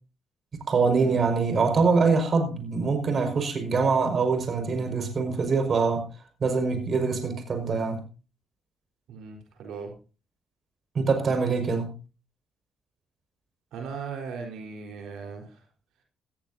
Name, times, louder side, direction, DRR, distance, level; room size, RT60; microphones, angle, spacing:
voice 1, 0.7-6.0 6.4-8.0 10.9-11.9, right 4 dB, 45° right, 5.5 m, -24 dB
voice 2, 9.1-9.9 13.7-15.6, right 5 dB, 85° right, 4.3 m, -38 dB
18.5 x 15.0 x 2.8 m
cardioid pair, 90°, 0 cm